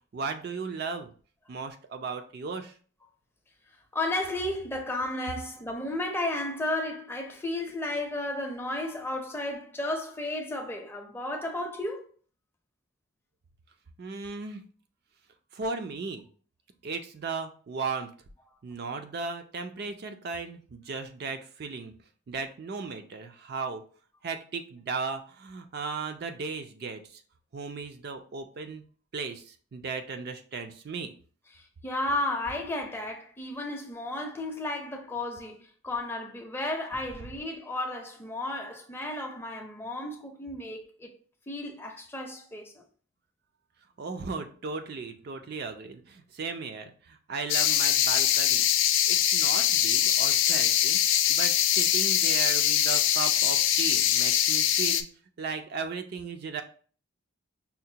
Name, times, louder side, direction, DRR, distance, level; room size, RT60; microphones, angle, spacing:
voice 1, 0.1-1.1 1.5-2.7 14.0-14.6 15.5-16.2 16.8-18.1 18.6-21.9 22.3-23.8 24.2-27.2 27.5-28.8 29.1-31.1 44.0-48.7 49.1-51.0 51.3-55.1 55.4-56.6, right 4 dB, 50° right, 0.4 m, -36 dB
voice 2, 3.9-12.1 31.5-41.1 41.5-42.8, left 1 dB, 10° left, 0.5 m, -33 dB
sound 1, 47.5-55.0, left 11 dB, 70° left, 0.3 m, -23 dB
5.6 x 2.1 x 2.7 m
head